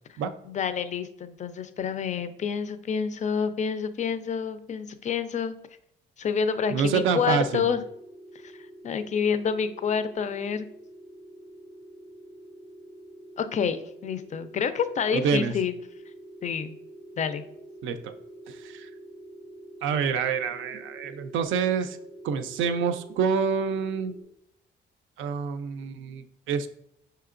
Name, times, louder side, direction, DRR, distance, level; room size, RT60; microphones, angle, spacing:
voice 1, 0.5-5.6 6.2-7.8 8.4-8.5 8.8-10.7 13.4-15.8 16.4-16.8 17.2-17.4, left 6 dB, 40° left, 12 dB, 0.4 m, -28 dB
sound 1, 6.5-24.2, right 1 dB, 85° left, 0.7 m, -47 dB
voice 2, 6.7-7.7 15.1-15.5 17.8-18.1 18.5-18.9 19.8-22.0 22.2-24.1 25.2-26.7, right 6 dB, 80° right, 9 dB, 0.4 m, -27 dB
5.7 x 2.8 x 2.5 m, 0.75 s
cardioid pair, 90°, 20 cm